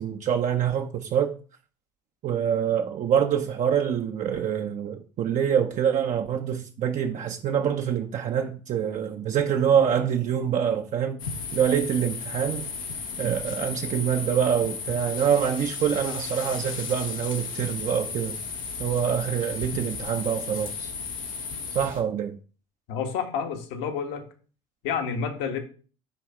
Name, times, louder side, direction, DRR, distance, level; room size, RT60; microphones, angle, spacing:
voice 1, 0.0-1.3 2.2-11.2 11.5-12.7 13.2-18.4 18.8-20.9 21.7-22.4, right 8 dB, 50° right, 0.8 m, -25 dB
sound 1, 11.2-22.0, left 5 dB, 90° left, 1.4 m, -34 dB
voice 2, 22.9-24.2 24.8-25.6, left 6 dB, 70° left, 1.6 m, -29 dB
9.9 x 3.4 x 4.4 m
hypercardioid pair, 65°, 17 cm